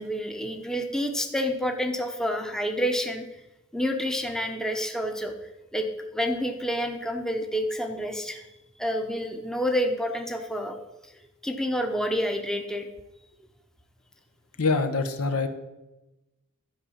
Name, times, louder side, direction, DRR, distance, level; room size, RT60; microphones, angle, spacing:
voice 1, 0.0-3.3 3.7-5.3 5.7-5.9 6.1-8.4 8.8-10.8 11.4-12.9, equal, ahead, 4 dB, 0.8 m, -28 dB
voice 2, 14.6-15.5, left 3 dB, 75° left, 8 dB, 1.1 m, -24 dB
12.0 x 5.1 x 7.1 m, 1.0 s
head